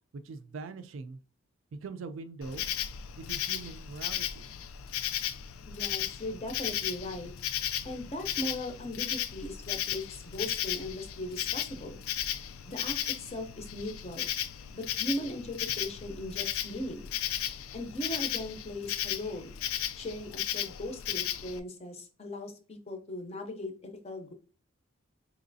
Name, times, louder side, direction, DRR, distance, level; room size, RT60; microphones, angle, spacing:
voice 1, 0.2-1.2 1.8-2.6 3.2-4.5, right 4 dB, 65° right, 10 dB, 0.4 m, -42 dB
Insect, 2.4-21.6, left 11 dB, 90° left, 0.3 m, -35 dB
voice 2, 5.7-7.3 7.8-12.0 12.7-14.3 14.7-17.1 17.7-19.5 20.0-24.3, left 1 dB, 30° left, 5 dB, 0.5 m, -38 dB
4.0 x 3.0 x 2.6 m, 0.37 s
head